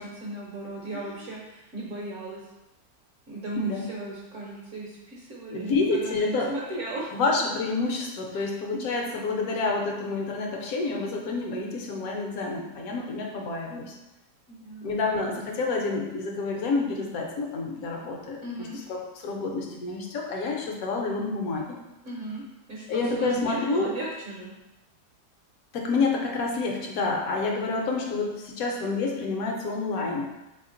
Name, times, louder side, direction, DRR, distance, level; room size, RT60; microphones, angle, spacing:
voice 1, 0.0-2.4 3.3-7.2 8.3-8.4 8.7-8.9 14.5-14.9 18.4-18.8 22.0-22.4 22.7-24.5, right 2 dB, 60° right, -4 dB, 0.9 m, -36 dB
voice 2, 3.6-3.9 5.5-6.5 7.1-13.9 14.8-19.0 19.2-21.7 22.9-23.9 25.7-30.3, left 3 dB, 65° left, 0 dB, 1.0 m, -28 dB
3.3 x 2.9 x 3.7 m, 0.98 s
omnidirectional pair, 1.8 m